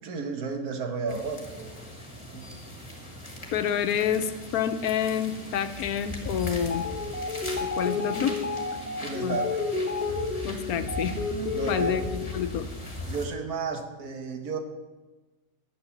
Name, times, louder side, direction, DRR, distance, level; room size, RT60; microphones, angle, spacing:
voice 1, 0.0-1.8 2.3-2.5 9.0-9.6 11.5-12.0 13.1-14.6, right 4 dB, 80° right, 5 dB, 1.7 m, -33 dB
sound 1, 1.1-13.3, left 1 dB, 20° left, 1.9 m, -39 dB
voice 2, 3.5-6.8 7.6-8.4 9.2-9.4 10.4-11.2 11.7-12.7, left 9 dB, 75° left, 9 dB, 1.2 m, -28 dB
sound 2, 6.6-12.3, left 3 dB, 5° right, 2.1 m, -31 dB
10.5 x 7.4 x 7.2 m, 1.2 s
omnidirectional pair, 1.6 m